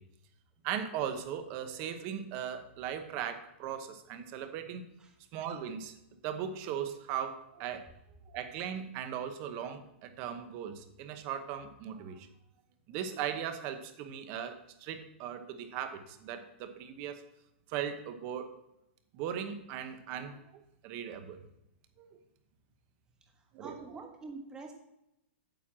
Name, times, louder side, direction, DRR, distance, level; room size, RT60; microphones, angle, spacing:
voice 1, 0.6-4.9 5.3-5.9 6.2-7.9 8.3-12.3 12.9-17.2 17.7-18.5 19.1-20.4 20.8-21.4 22.0-22.1 23.5-23.8, right 9 dB, 35° right, 8 dB, 1.0 m, -38 dB
voice 2, 23.4-24.7, right 3 dB, 10° right, 3 dB, 1.4 m, -46 dB
9.1 x 4.5 x 7.5 m, 0.85 s
hypercardioid pair, 160°, 7 cm